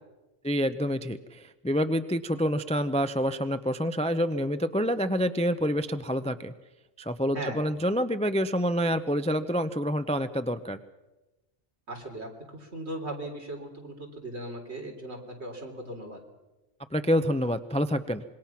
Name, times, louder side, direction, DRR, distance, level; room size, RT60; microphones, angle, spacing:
voice 1, 0.4-6.5 7.0-10.8 16.9-18.2, equal, 5° left, 10 dB, 0.5 m, -27 dB
voice 2, 11.9-16.2, right 1 dB, 65° right, 1 dB, 4.0 m, -38 dB
26.0 x 21.5 x 5.9 m, 1.1 s
omnidirectional pair, 1.2 m